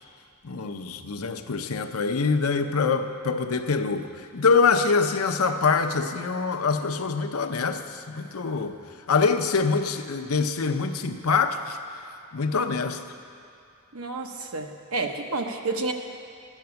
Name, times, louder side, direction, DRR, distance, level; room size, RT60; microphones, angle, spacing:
voice 1, 0.4-8.8 9.1-11.8 12.3-13.0, left 4 dB, 80° left, 7 dB, 0.7 m, -24 dB
voice 2, 13.9-15.9, right 3 dB, 85° right, 4 dB, 1.0 m, -30 dB
12.5 x 9.1 x 7.0 m, 2.5 s
head